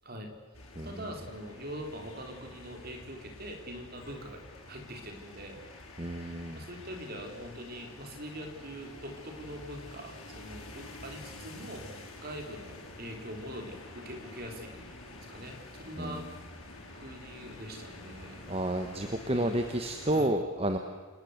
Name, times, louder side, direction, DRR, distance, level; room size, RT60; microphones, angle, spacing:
sound 1, 0.5-20.2, left 2 dB, 85° left, 6.9 m, -48 dB
voice 1, 0.8-5.6 6.6-16.3 16.9-18.5 19.3-19.6 20.0-20.3, equal, 45° right, 4 dB, 3.8 m, -43 dB
voice 2, 6.0-6.6 16.0-16.3 18.5-20.8, right 1 dB, 25° right, 6 dB, 1.3 m, -30 dB
28.0 x 19.5 x 8.1 m, 1.5 s
head